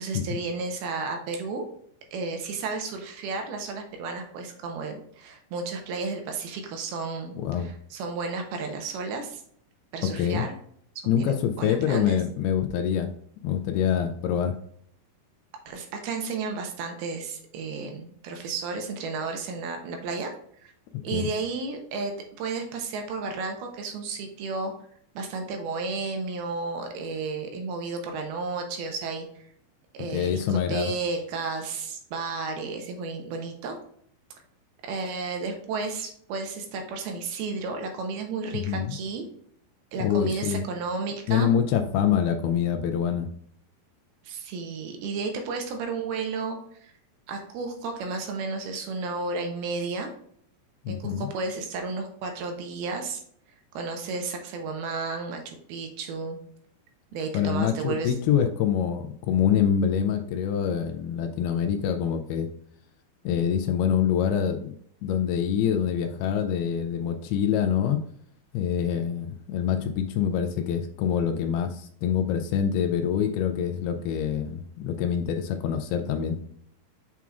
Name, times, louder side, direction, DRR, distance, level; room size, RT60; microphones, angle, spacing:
voice 1, 0.0-1.7 2.1-9.4 9.9-10.5 11.2-12.2 15.7-20.3 20.6-20.7 21.0-22.1 22.4-24.7 25.2-29.5 29.9-33.8 34.9-39.3 39.9-41.5 44.2-46.9 47.3-50.1 50.9-53.2 53.7-56.4 57.1-58.1, right 4 dB, 75° right, 4 dB, 2.6 m, -32 dB
voice 2, 7.4-7.7 10.0-10.4 11.1-13.1 13.4-14.6 21.1-21.3 30.1-30.9 38.5-38.9 40.0-40.6 41.3-43.3 50.9-51.3 57.3-62.5 63.2-64.7 65.0-68.0 68.5-76.4, left 8 dB, 85° left, 6 dB, 2.4 m, -25 dB
7.0 x 5.9 x 2.4 m, 0.66 s
omnidirectional pair, 4.8 m